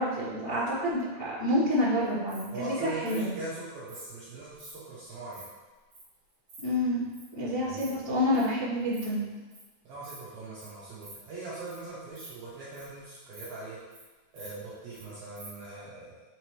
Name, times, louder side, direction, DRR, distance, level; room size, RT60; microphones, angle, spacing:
voice 1, 0.0-3.3 6.6-7.0 7.3-9.2, left 1 dB, 40° left, -16 dB, 1.6 m, -28 dB
Insect, 2.0-2.4 3.0-3.2 3.9-4.1 4.5-4.7 5.1-5.4 5.9-6.0 6.3-6.6 7.1-7.3 7.6-7.9 8.1-8.4 8.8-9.0 9.3-9.6 10.0-10.2 10.6-10.7 11.0-11.1 11.5-11.8 12.1-13.0 13.3-13.4 13.7-14.0 14.3-15.0 15.3-15.5, right 2 dB, 45° right, 2.5 m, -48 dB
voice 2, 2.5-5.4 7.6-8.0 9.8-13.8 14.3-16.2, right 2 dB, 75° right, -9 dB, 2.3 m, -41 dB
6.8 x 4.9 x 3.1 m, 1.2 s
omnidirectional pair, 5.5 m